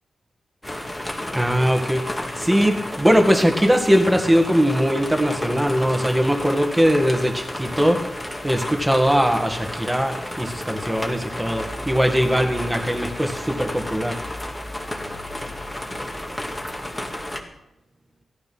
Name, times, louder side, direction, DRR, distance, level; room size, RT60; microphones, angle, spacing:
sound 1, 0.6-17.4, left 1 dB, 10° left, 2.0 m, -32 dB
voice 1, 1.3-8.0 8.4-14.2, equal, 5° right, 4 dB, 1.8 m, -20 dB
17.0 x 13.5 x 6.1 m, 0.86 s
wide cardioid pair, 175°, 0 cm